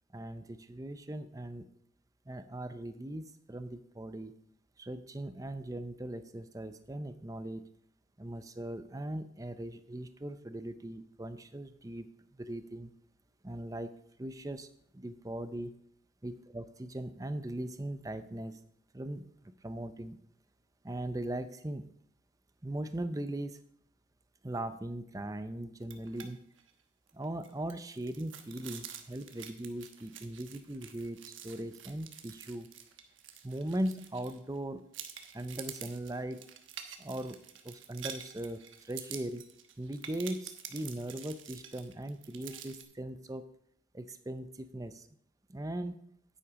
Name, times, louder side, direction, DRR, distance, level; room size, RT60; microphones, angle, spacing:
voice 1, 0.1-1.7 2.3-4.4 4.8-7.7 8.2-12.9 13.4-14.7 14.9-15.7 16.2-18.6 18.9-20.2 20.8-21.8 22.6-23.6 24.4-26.4 27.1-32.7 33.4-34.9 35.3-36.5 37.0-39.5 39.8-43.5 43.9-45.1 45.5-46.0, right 1 dB, 20° right, 11 dB, 0.6 m, -39 dB
sound 1, 25.8-26.3 26.6-26.7 27.1-34.6 34.9-42.8, right 9 dB, 90° right, 1.1 m, -48 dB
9.9 x 9.7 x 3.7 m, 0.68 s
head